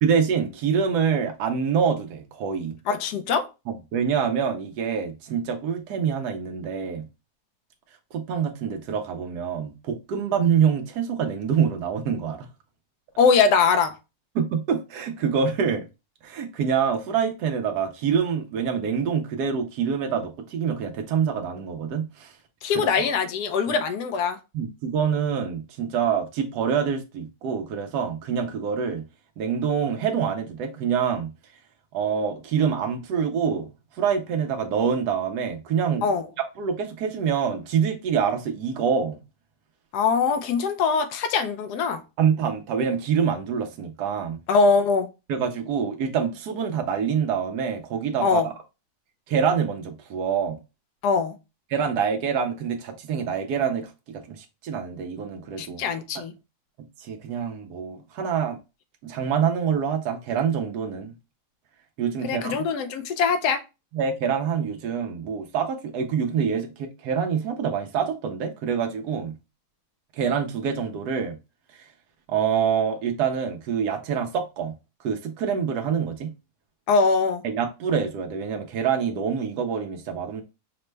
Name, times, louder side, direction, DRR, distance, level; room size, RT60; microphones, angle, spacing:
voice 1, 0.0-2.8 3.9-7.0 8.1-12.5 14.3-15.9 16.2-22.3 22.7-23.1 24.5-29.0 29.4-31.3 31.9-33.7 33.9-36.1 36.6-39.2 42.2-44.4 45.3-48.4 49.3-50.6 51.7-55.8 57.0-58.6 59.0-61.1 62.0-62.6 63.9-69.3 70.1-71.4 71.7-71.8 72.3-74.7 75.0-76.3 77.4-80.4, right 7 dB, 85° right, 1.1 m, -26 dB
voice 2, 2.9-3.5 13.2-13.9 22.6-24.4 36.0-36.3 39.9-42.0 44.5-45.1 48.2-48.5 51.0-51.3 55.6-56.3 62.2-63.6 76.9-77.4, left 5 dB, 85° left, 1.2 m, -22 dB
5.0 x 2.1 x 3.2 m
omnidirectional pair, 1.7 m